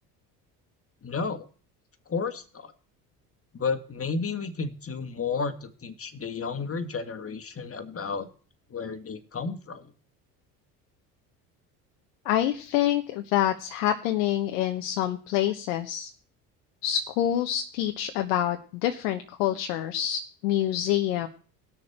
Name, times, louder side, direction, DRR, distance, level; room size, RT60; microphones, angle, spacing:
voice 1, 1.0-1.5 2.1-2.7 3.5-8.3 8.7-9.9, left 4 dB, 30° left, 9 dB, 1.8 m, -32 dB
voice 2, 12.2-16.1 16.8-21.3, left 12 dB, 75° left, 6 dB, 1.1 m, -26 dB
19.0 x 6.7 x 4.4 m, 0.41 s
hypercardioid pair, 65°, 46 cm